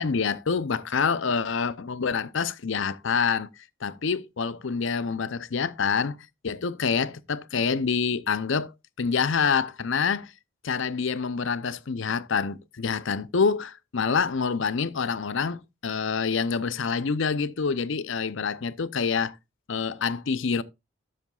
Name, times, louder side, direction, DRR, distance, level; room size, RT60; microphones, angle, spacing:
voice 1, 0.0-3.5 3.8-6.2 6.4-8.7 9.0-10.3 10.6-19.4 19.7-20.6, left 5 dB, 60° left, 0.6 m, -26 dB
12.0 x 7.7 x 2.4 m
head